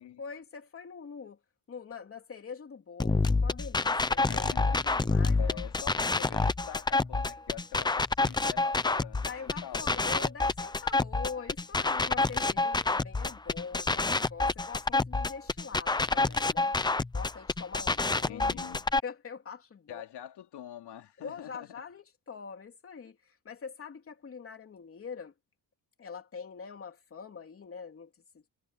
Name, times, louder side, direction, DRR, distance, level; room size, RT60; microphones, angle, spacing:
voice 1, 0.0-1.4 1.7-5.5 9.2-16.8 17.1-18.7 19.0-20.0 21.2-25.3 26.0-28.4, left 6 dB, 30° left, 3.2 m, -44 dB
sound 1, 3.0-19.0, left 3 dB, 10° left, 0.5 m, -28 dB
voice 2, 4.3-4.8 5.4-10.0 18.2-18.9 19.9-21.7, left 11 dB, 75° left, 2.9 m, -45 dB
cardioid pair, 175°, 41 cm